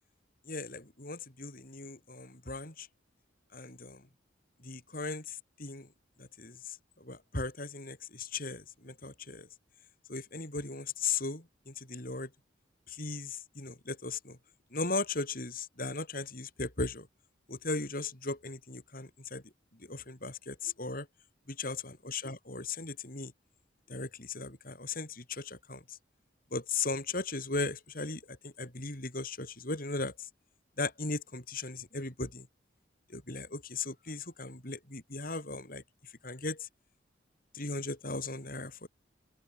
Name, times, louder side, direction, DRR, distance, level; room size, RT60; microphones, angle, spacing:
voice 1, 0.5-2.9 3.5-4.0 4.6-5.9 6.2-9.5 10.1-12.3 12.9-14.4 14.7-17.1 17.5-19.4 19.8-21.1 21.5-23.3 23.9-26.0 26.5-30.3 30.8-32.5 33.1-35.8 36.2-36.7 37.5-38.9, left 3 dB, 50° left, 6.0 m, -37 dB
open air
head